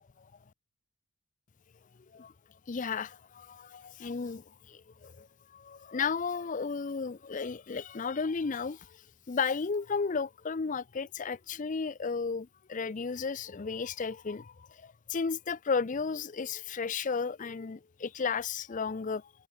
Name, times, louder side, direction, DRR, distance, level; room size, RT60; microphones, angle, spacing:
voice 1, 2.7-5.3 5.5-9.0 9.3-19.3, left 5 dB, 35° left, 0.4 m, -34 dB
head